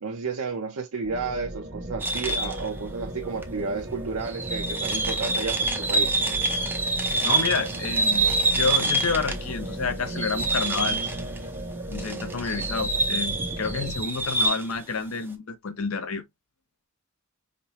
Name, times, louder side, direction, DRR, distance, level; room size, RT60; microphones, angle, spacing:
voice 1, 0.0-6.1, right 4 dB, 85° right, 0.7 m, -32 dB
sound 1, 1.0-13.9, right 1 dB, 70° right, 1.4 m, -36 dB
sound 2, 2.0-2.7 3.4-3.5 4.2-9.5 9.8-11.4 11.9-14.8, right 2 dB, 10° right, 0.6 m, -26 dB
voice 2, 7.2-11.0 11.9-16.2, left 4 dB, 70° left, 0.8 m, -29 dB
5.2 x 2.1 x 2.8 m
head